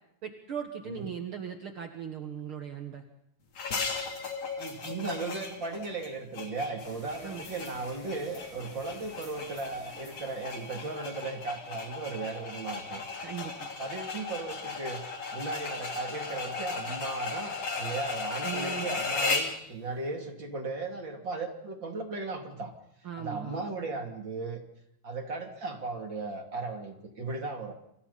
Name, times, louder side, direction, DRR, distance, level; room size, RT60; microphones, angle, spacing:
voice 1, 0.2-3.0 7.2-7.4 13.2-13.7 18.4-19.0 23.0-23.6, right 7 dB, 70° right, 4 dB, 1.2 m, -38 dB
sound 1, 3.6-19.6, left 4 dB, 40° left, 3.7 m, -36 dB
voice 2, 4.5-13.0 13.8-15.0 15.3-22.7 23.2-24.6 25.0-27.7, right 3 dB, 30° right, 2 dB, 3.0 m, -36 dB
sound 2, 6.8-11.5, left 3 dB, 60° left, 7.8 m, -52 dB
28.5 x 25.5 x 4.2 m, 0.77 s
omnidirectional pair, 4.9 m